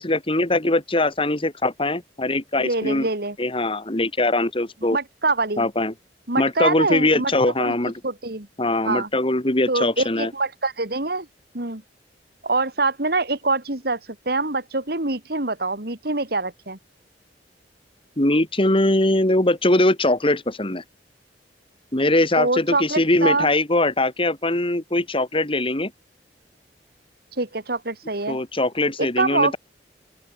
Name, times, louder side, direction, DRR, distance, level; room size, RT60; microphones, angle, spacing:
voice 1, 0.0-3.1 3.4-5.0 5.6-5.9 6.4-7.9 8.6-10.3 18.2-20.8 21.9-25.9 28.3-29.6, left 2 dB, 30° left, 2.9 m, -21 dB
voice 2, 2.6-3.4 4.9-5.7 6.3-7.3 7.6-8.5 8.8-9.1 9.7-11.3 11.5-11.8 12.4-14.0 14.2-16.8 22.4-23.5 27.3-28.4 28.8-29.6, right 3 dB, 60° right, 3.0 m, -25 dB
open air
head